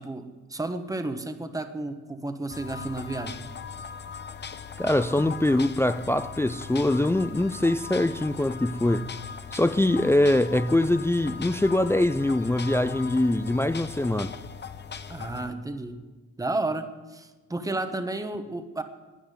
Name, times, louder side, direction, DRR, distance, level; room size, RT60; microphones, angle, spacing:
voice 1, 0.0-3.4 15.1-18.8, right 2 dB, 10° right, 1.2 m, -32 dB
sound 1, 2.5-15.5, left 6 dB, 35° left, 0.8 m, -39 dB
voice 2, 4.8-9.1 9.5-14.3, left 1 dB, 10° left, 0.4 m, -23 dB
10.5 x 9.6 x 9.3 m
cardioid pair, 90°, 30 cm